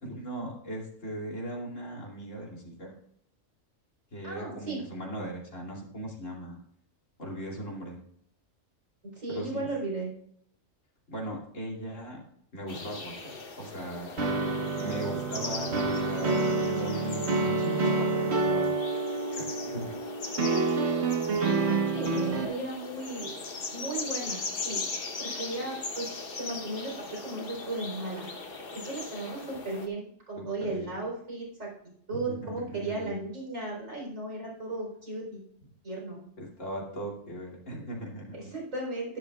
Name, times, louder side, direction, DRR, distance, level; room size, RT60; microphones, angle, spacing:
voice 1, 0.0-2.9 4.1-6.6 7.2-8.0 9.3-9.7 11.1-12.2 12.5-14.2 14.8-18.7 19.4-19.9 30.4-30.9 32.1-33.2 36.4-38.4, right 1 dB, 70° left, -2 dB, 3.2 m, -38 dB
voice 2, 4.2-4.8 9.0-10.1 21.9-23.3 23.7-24.8 25.2-28.3 28.7-31.7 32.1-35.4 35.8-36.2 38.3-39.2, right 2 dB, 75° right, -2 dB, 4.5 m, -35 dB
sound 1, 12.7-29.9, left 4 dB, 45° left, 1.2 m, -39 dB
sound 2, 14.2-22.5, right 3 dB, 55° right, 1.5 m, -28 dB
11.5 x 11.5 x 2.4 m, 0.69 s
omnidirectional pair, 1.4 m